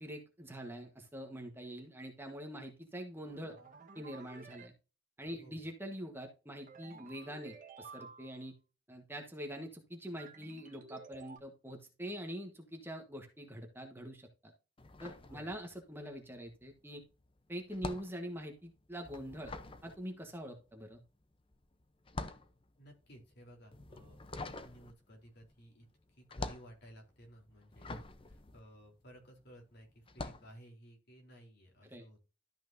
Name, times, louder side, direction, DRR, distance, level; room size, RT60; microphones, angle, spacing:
voice 1, 0.0-3.6 3.9-4.7 5.2-8.6 8.9-14.5 15.0-17.0 17.5-19.5 19.8-21.0 31.8-32.0, equal, 10° right, 3 dB, 1.4 m, -44 dB
sound 1, 3.2-4.7 6.7-8.5 10.2-11.4, right 4 dB, 40° right, 1.5 m, -53 dB
sound 2, 14.8-16.0 16.3-29.5 30.0-30.5, left 2 dB, 25° left, 0.8 m, -46 dB
voice 2, 15.2-15.5 22.8-32.2, equal, 55° left, 1 dB, 3.7 m, -56 dB
13.0 x 5.9 x 2.7 m, 0.32 s
head